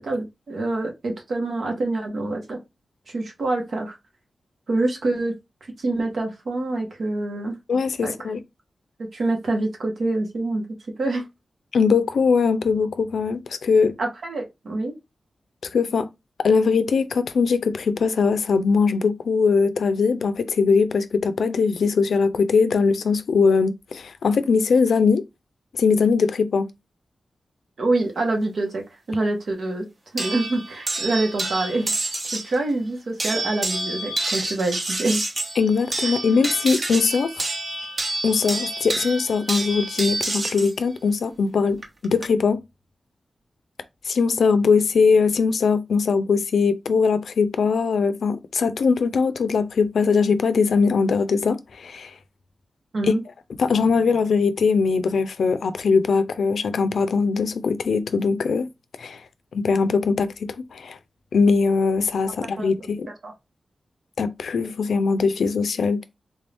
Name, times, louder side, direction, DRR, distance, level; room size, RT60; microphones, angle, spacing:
voice 1, 0.0-2.6 3.1-3.9 4.7-5.3 5.8-7.6 8.0-8.1 9.1-10.6 11.0-11.2 14.0-14.9 27.8-28.8 29.1-29.9 30.1-31.9 32.3-35.2 52.9-53.2 62.6-62.7 63.2-63.3, right 2 dB, 70° right, 1.2 m, -25 dB
voice 2, 7.7-8.4 11.7-13.9 15.7-16.1 16.4-25.2 25.7-26.7 35.6-37.5 38.2-42.6 44.1-52.1 53.6-58.7 59.0-59.2 59.5-61.0 61.3-63.1 64.2-66.0, left 5 dB, 85° left, 0.4 m, -21 dB
sound 1, 30.2-32.5 33.2-40.7 41.8-42.2, right 2 dB, 50° right, 1.0 m, -28 dB
3.6 x 2.6 x 3.4 m
wide cardioid pair, 85°, 0 cm